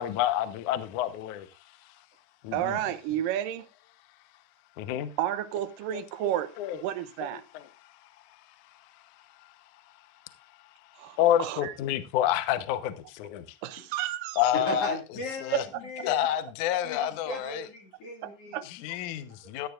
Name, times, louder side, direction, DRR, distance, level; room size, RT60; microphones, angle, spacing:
voice 1, 0.0-1.4 2.4-2.8 4.8-5.1 5.9-6.3 6.6-6.8 7.5-7.6 11.2-13.4 14.4-14.9 15.4-15.6 16.0-17.7 18.7-19.7, left 12 dB, 75° left, 1.8 m, -28 dB
voice 2, 2.5-3.6 5.2-6.5 6.8-7.4 11.0-11.7 13.6-14.4 15.5-15.6 16.2-16.3 18.2-19.0, right 12 dB, 75° right, 2.0 m, -31 dB
voice 3, 14.5-16.3 16.8-18.6, left 1 dB, 45° left, 2.5 m, -36 dB
14.5 x 12.0 x 2.5 m
omnidirectional pair, 4.8 m